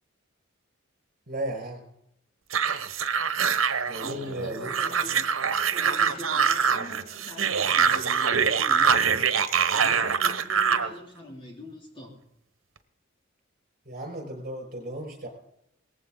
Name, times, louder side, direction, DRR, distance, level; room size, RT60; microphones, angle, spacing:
voice 1, 1.3-1.8 3.9-4.7 5.1-5.2 13.9-15.3, right 1 dB, 45° right, 3 dB, 5.7 m, -35 dB
sound 1, 2.5-10.9, right 6 dB, 90° right, 1.0 m, -24 dB
voice 2, 4.0-12.2, equal, 25° left, 0 dB, 3.2 m, -43 dB
19.0 x 15.0 x 3.9 m, 0.75 s
head